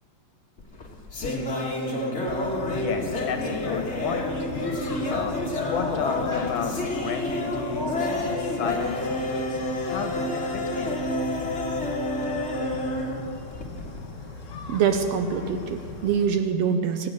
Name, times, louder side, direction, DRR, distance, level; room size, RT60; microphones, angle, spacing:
sound 1, 0.6-14.0, left 2 dB, 35° left, 1.2 m, -29 dB
sound 2, 2.3-16.3, left 3 dB, 90° left, 0.6 m, -39 dB
voice 1, 2.7-4.3 5.1-9.6 9.8-11.0, left 6 dB, 65° left, 5 dB, 1.9 m, -33 dB
voice 2, 14.7-17.1, right 6 dB, 75° right, 7 dB, 1.7 m, -24 dB
24.5 x 8.5 x 6.5 m, 2.4 s
omnidirectional pair, 3.3 m